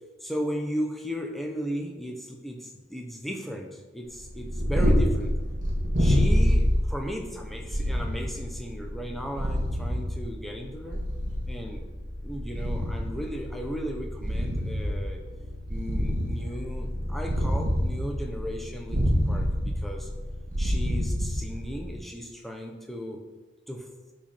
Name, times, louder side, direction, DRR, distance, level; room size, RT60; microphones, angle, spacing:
voice 1, 0.2-5.3 6.0-11.0 11.5-11.8 12.2-15.2 15.7-20.1 20.6-23.2 23.7-23.9, equal, ahead, 1 dB, 1.1 m, -36 dB
Purr, 4.2-21.9, equal, 40° right, 3.1 m, -27 dB
11.5 x 5.3 x 5.8 m, 1.2 s
head